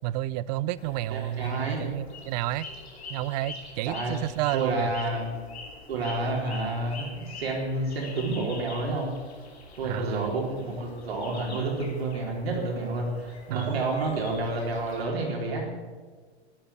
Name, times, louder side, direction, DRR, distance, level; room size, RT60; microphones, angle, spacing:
voice 1, 0.0-2.7 3.1-4.9 9.8-10.3 13.5-13.8, right 14 dB, 40° right, 19 dB, 0.5 m, -30 dB
sound 1, 0.8-15.0, left 3 dB, 70° left, 3.1 m, -45 dB
voice 2, 1.1-1.8 3.9-4.1 4.5-5.3 5.9-9.1 9.8-15.7, right 2 dB, 65° right, -1 dB, 4.0 m, -29 dB
12.0 x 11.0 x 8.3 m, 1.5 s
figure-of-eight pair, 100°, 33 cm